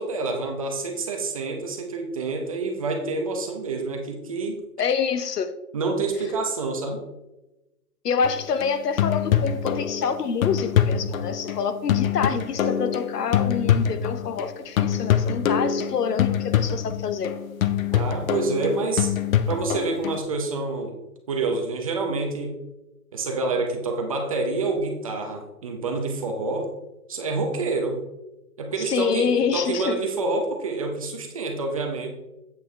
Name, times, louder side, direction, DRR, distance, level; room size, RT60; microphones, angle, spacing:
voice 1, 0.0-4.6 5.7-7.0 17.9-19.1 19.5-21.0 21.3-22.6 23.1-26.7 27.1-28.0 28.6-32.1, right 3 dB, 25° right, 3 dB, 0.6 m, -27 dB
voice 2, 4.8-5.5 8.0-17.3 28.9-30.0, left 6 dB, 85° left, 11 dB, 0.9 m, -26 dB
sound 1, 8.2-14.5 14.8-20.2, left 9 dB, 60° left, 0.7 m, -24 dB
8.3 x 6.7 x 3.2 m, 0.99 s
hypercardioid pair, 160°, 46 cm